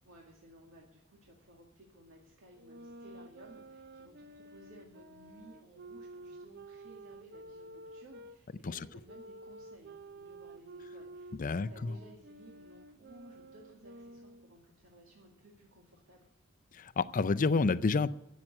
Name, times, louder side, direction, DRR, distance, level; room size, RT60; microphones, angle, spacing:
voice 1, 0.0-16.3, right 1 dB, 80° right, -1 dB, 2.2 m, -57 dB
sound 1, 2.5-8.4 9.1-14.5, right 2 dB, 55° right, 0.7 m, -51 dB
voice 2, 11.4-11.9 16.7-18.1, left 4 dB, 40° left, 15 dB, 0.5 m, -29 dB
12.0 x 7.6 x 9.0 m, 0.87 s
head